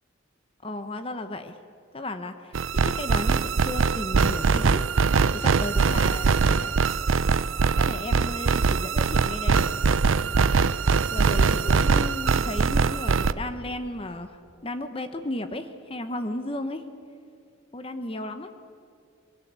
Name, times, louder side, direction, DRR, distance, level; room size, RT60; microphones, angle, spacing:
voice 1, 0.6-1.5 1.9-4.8 5.3-6.7 7.7-9.7 11.1-14.4 14.6-16.8 17.7-18.5, left 1 dB, 25° left, 8 dB, 1.0 m, -34 dB
sound 1, 2.5-13.3, right 5 dB, 80° right, 0.6 m, -22 dB
23.0 x 22.5 x 8.2 m, 2.3 s
head